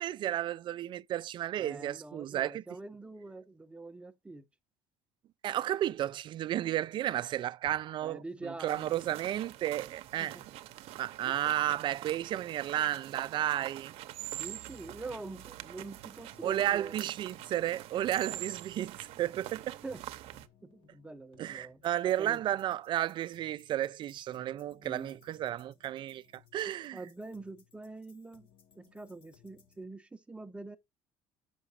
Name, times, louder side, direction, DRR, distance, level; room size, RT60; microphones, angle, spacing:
voice 1, 0.0-2.6 5.4-10.4 11.0-14.0 16.4-19.8 21.4-27.0, right 12 dB, 45° right, 0.4 m, -33 dB
voice 2, 1.6-4.4 8.0-9.1 10.2-10.4 14.4-17.0 18.3-18.4 19.8-20.0 20.6-21.8 22.2-22.4 24.8-25.2 26.9-28.5 28.7-30.8, right 2 dB, 10° right, 0.7 m, -45 dB
sound 1, 8.7-20.5, right 14 dB, 70° right, 0.7 m, -45 dB
sound 2, 13.8-29.8, left 7 dB, 55° left, 1.6 m, -66 dB
7.0 x 5.9 x 5.4 m
cardioid pair, 120°, 11 cm